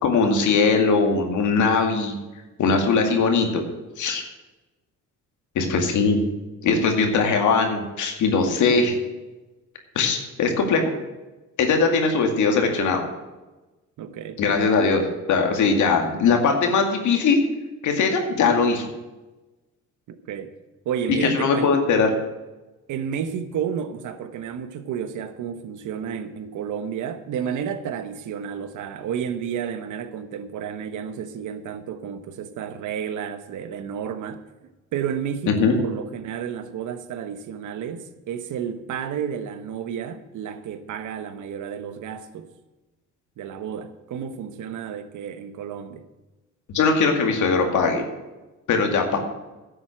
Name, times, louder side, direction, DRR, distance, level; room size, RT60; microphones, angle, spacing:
voice 1, 0.0-2.2 2.6-3.6 4.0-4.2 5.6-6.2 6.6-9.0 10.0-10.8 11.6-13.0 14.4-15.0 15.3-17.4 17.8-18.9 21.2-22.1 35.5-35.7 46.7-48.1 48.7-49.2, left 4 dB, 75° left, 2.2 m, -20 dB
voice 2, 14.0-14.9 20.1-20.5 20.8-21.7 22.9-34.4 34.9-42.5 43.4-46.0, right 8 dB, 80° right, 1.1 m, -31 dB
10.5 x 8.0 x 7.8 m
cardioid pair, 90°, 30 cm